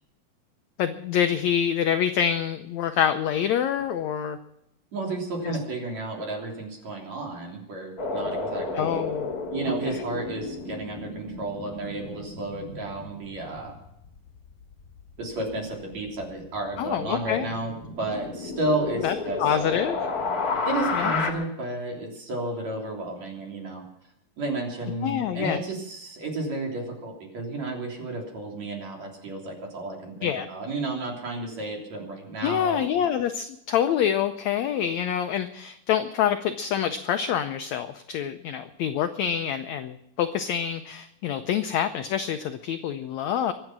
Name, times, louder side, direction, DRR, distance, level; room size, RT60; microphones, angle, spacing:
voice 1, 0.8-4.4 5.4-5.6 8.7-9.4 9.9-10.0 16.8-17.5 19.0-20.1 20.9-21.1 25.0-25.6 30.2-30.5 32.4-43.5, left 9 dB, 80° left, 9 dB, 1.6 m, -26 dB
voice 2, 4.9-9.0 9.5-13.8 15.2-19.6 20.6-23.8 24.4-32.8, right 2 dB, 50° right, 0 dB, 4.4 m, -32 dB
sound 1, 8.0-15.1 15.5-15.6 15.9-21.3, left 3 dB, 30° left, 2.1 m, -32 dB
23.5 x 9.1 x 6.1 m, 0.80 s
omnidirectional pair, 4.0 m